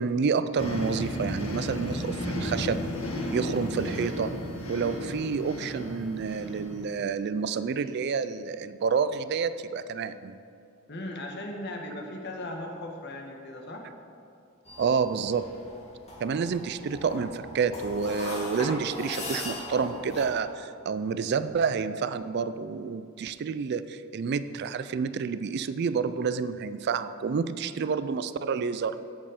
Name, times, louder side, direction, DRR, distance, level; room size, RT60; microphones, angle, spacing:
voice 1, 0.0-2.8 3.3-4.3 4.7-10.4 14.8-15.5 16.2-29.0, right 5 dB, 55° right, 13 dB, 0.3 m, -29 dB
sound 1, 0.6-7.0, equal, 75° left, 1.6 m, -33 dB
voice 2, 10.9-13.9, left 1 dB, 55° left, 1 dB, 1.4 m, -37 dB
sound 2, 14.7-20.2, left 1 dB, 30° left, 1.9 m, -39 dB
16.0 x 5.4 x 5.1 m, 2.6 s
head